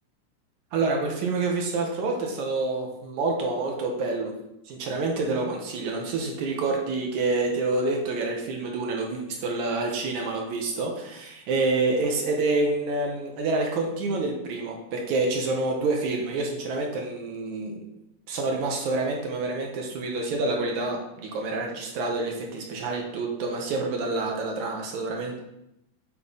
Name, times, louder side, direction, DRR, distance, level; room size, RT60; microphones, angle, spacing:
voice 1, 0.7-4.3 4.7-17.8 18.3-25.4, right 3 dB, 70° right, 0 dB, 2.3 m, -27 dB
8.1 x 3.8 x 5.6 m, 0.85 s
omnidirectional pair, 3.8 m